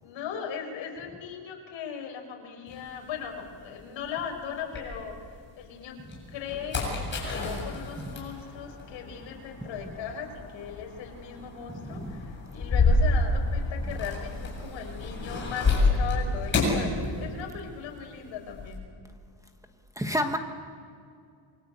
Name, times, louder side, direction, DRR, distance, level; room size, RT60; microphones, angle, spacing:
voice 1, 0.0-5.2 5.6-6.0 6.3-18.8, left 7 dB, 70° left, 2 dB, 5.8 m, -38 dB
sound 1, 2.7-5.5 5.9-17.7 17.9-18.8, left 2 dB, 25° left, 7.8 m, -29 dB
voice 2, 11.7-12.3 20.0-20.4, equal, 5° right, 5 dB, 1.3 m, -30 dB
28.0 x 24.0 x 8.7 m, 2.3 s
cardioid pair, 160°, 47 cm